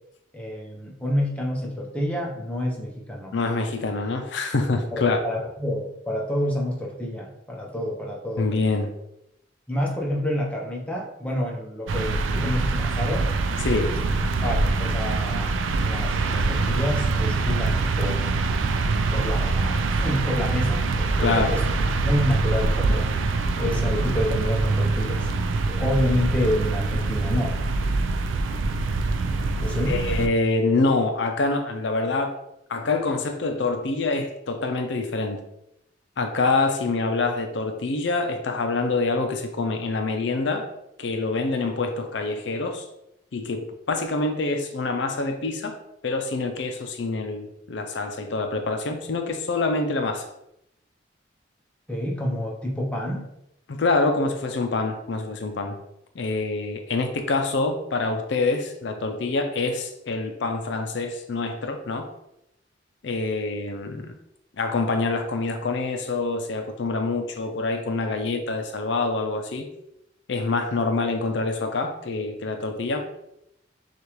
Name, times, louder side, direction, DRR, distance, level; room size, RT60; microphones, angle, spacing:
voice 1, 0.3-3.3 4.9-8.5 9.7-13.3 13.7-13.9 14.4-15.6 15.8-18.2 19.1-21.6 22.0-23.1 23.6-25.3 25.7-27.6 29.6-30.0 51.9-53.2, equal, 5° left, -2 dB, 0.8 m, -28 dB
voice 2, 3.3-5.2 8.4-8.9 13.6-13.9 21.2-21.5 29.9-32.4 32.7-35.4 36.2-40.7 41.0-42.9 43.3-45.8 46.0-50.3 53.7-55.8 56.2-62.1 63.0-64.1 64.6-69.7 70.3-73.0, left 3 dB, 70° left, 5 dB, 0.5 m, -26 dB
sound 1, 11.9-30.3, right 3 dB, 85° right, 0.4 m, -24 dB
6.5 x 2.4 x 3.1 m, 0.82 s
head